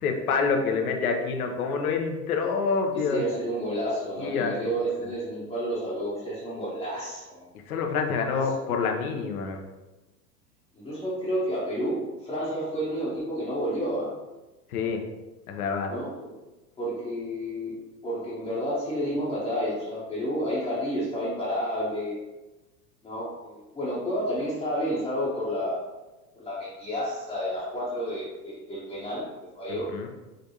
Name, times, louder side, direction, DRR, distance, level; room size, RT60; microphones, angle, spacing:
voice 1, 0.0-3.2 4.2-4.5 7.7-9.6 14.7-15.0 15.5-15.9 29.9-30.1, left 5 dB, 60° left, 3 dB, 0.9 m, -27 dB
voice 2, 2.9-7.5 8.3-8.5 10.7-14.1 15.9-16.3 16.8-22.2 23.0-25.8 26.3-29.3 29.5-29.9, equal, 10° left, -10 dB, 1.1 m, -30 dB
5.2 x 3.3 x 2.8 m, 1.1 s
figure-of-eight pair, 90°, 50 cm